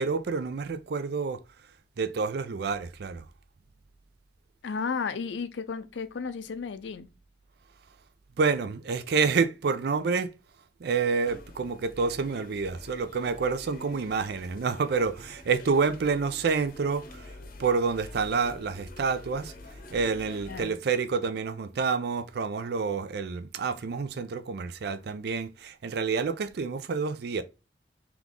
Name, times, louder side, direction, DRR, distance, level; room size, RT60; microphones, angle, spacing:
voice 1, 0.0-1.4 2.0-3.3 8.4-10.3 10.8-17.3 17.6-19.5 19.9-27.4, right 5 dB, 65° right, 0.4 m, -28 dB
voice 2, 4.6-7.1 20.5-20.7, left 5 dB, 90° left, 0.5 m, -33 dB
sound 1, 11.2-20.7, left 1 dB, 50° left, 0.7 m, -47 dB
3.5 x 3.0 x 3.7 m
head